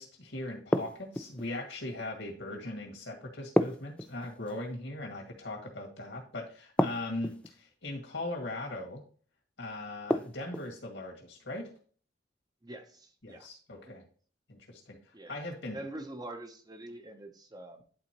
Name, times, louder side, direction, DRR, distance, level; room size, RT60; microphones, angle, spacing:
voice 1, 0.0-9.0 9.6-11.7 13.2-14.0 14.5-15.8, left 2 dB, 75° left, 0 dB, 2.1 m, -39 dB
sound 1, 0.7-1.5 3.6-4.6 6.8-7.5 10.1-10.7, left 1 dB, 5° left, 0.3 m, -30 dB
voice 2, 12.6-13.5 15.1-15.5 15.7-17.8, right 1 dB, 20° right, 5 dB, 0.8 m, -44 dB
11.0 x 4.1 x 3.0 m, 0.44 s
head